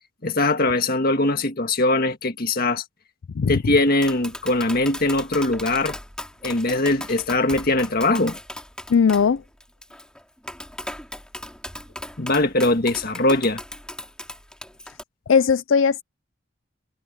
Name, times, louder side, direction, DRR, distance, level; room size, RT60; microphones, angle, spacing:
voice 1, 0.2-2.8 3.5-6.0 6.4-8.4 12.2-13.6, left 2 dB, 50° left, 1.8 m, -21 dB
Tap, 3.8-15.0, left 1 dB, 5° left, 2.6 m, -37 dB
voice 2, 8.9-9.4 15.3-16.0, left 6 dB, 70° left, 0.4 m, -18 dB
head